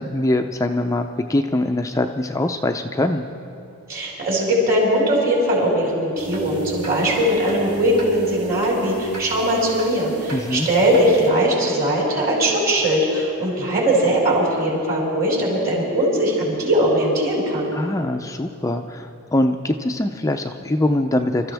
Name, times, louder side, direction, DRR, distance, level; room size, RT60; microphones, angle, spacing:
voice 1, 0.0-3.2 10.3-10.7 17.7-21.5, left 1 dB, 15° left, 5 dB, 0.4 m, -23 dB
voice 2, 3.9-17.7, right 1 dB, 45° right, -4 dB, 4.7 m, -20 dB
sound 1, 6.2-11.3, right 3 dB, 85° right, 2.9 m, -35 dB
26.0 x 13.5 x 3.4 m, 2.7 s
head